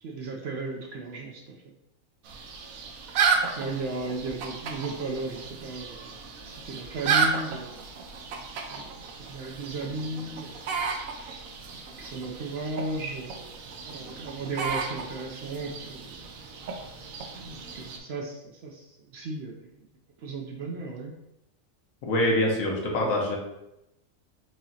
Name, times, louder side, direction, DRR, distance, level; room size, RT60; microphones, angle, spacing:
voice 1, 0.0-1.6 2.7-2.8 3.4-7.8 8.6-10.6 11.1-11.5 11.7-13.5 13.8-16.2 17.3-19.9 20.2-21.1 23.0-23.2, right 3 dB, 65° right, 0 dB, 0.7 m, -36 dB
sound 1, 2.2-18.0, right 5 dB, 80° right, 1.0 m, -33 dB
voice 2, 22.0-23.4, left 1 dB, 80° left, -2 dB, 1.4 m, -25 dB
4.8 x 2.9 x 2.7 m, 0.86 s
omnidirectional pair, 1.4 m